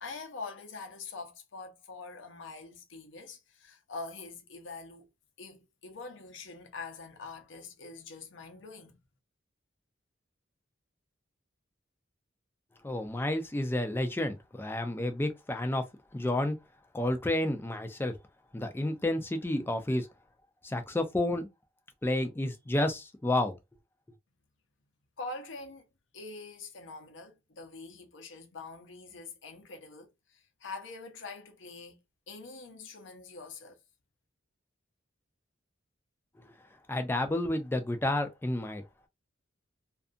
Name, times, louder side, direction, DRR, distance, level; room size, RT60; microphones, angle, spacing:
voice 1, 0.0-5.1 5.4-9.0 25.2-25.9 26.1-32.0 32.3-33.8, left 3 dB, 75° left, 0.7 m, -44 dB
voice 2, 12.8-15.8 16.1-16.6 16.9-18.1 18.5-20.1 20.6-21.5 22.0-23.6 36.9-39.1, left 1 dB, 10° left, 0.4 m, -30 dB
2.6 x 2.4 x 2.5 m
head